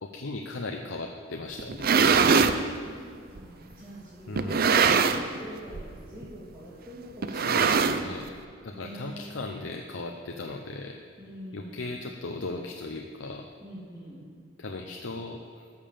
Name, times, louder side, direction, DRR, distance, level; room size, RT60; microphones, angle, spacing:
voice 1, 0.0-2.1 4.3-4.7 7.3-8.3 8.6-11.0 11.5-13.5 14.6-15.7, left 2 dB, 75° left, 3 dB, 0.7 m, -37 dB
sound 1, 1.6-2.6 3.4-3.5 4.4-5.4 5.7-6.0 6.2-6.3 7.2-8.3, right 5 dB, 50° right, 0.5 m, -22 dB
voice 2, 2.3-7.9 8.7-9.3 11.2-11.9 13.6-14.2, equal, 15° right, -13 dB, 2.9 m, -45 dB
14.0 x 5.5 x 6.9 m, 2.1 s
head